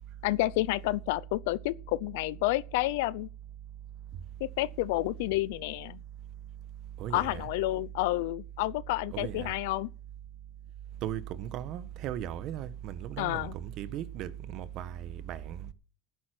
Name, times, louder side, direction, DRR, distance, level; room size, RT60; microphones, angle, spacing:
voice 1, 0.2-3.3 4.4-6.0 7.1-9.9 13.2-13.5, left 18 dB, 85° left, 0.6 m, -30 dB
voice 2, 7.0-7.4 9.1-9.5 11.0-15.7, right 11 dB, 55° right, 1.3 m, -37 dB
12.0 x 9.6 x 6.2 m
supercardioid pair, 125°, 0 cm